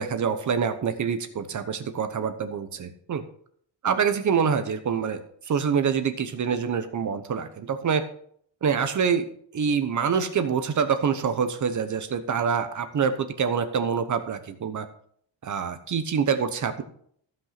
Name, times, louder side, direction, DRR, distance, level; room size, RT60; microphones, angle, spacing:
voice 1, 0.0-3.2 3.8-8.0 8.6-9.3 9.5-14.9 15.4-16.8, right 6 dB, 40° right, 9 dB, 1.0 m, -26 dB
15.0 x 5.5 x 5.9 m, 0.63 s
cardioid pair, 165°, 46 cm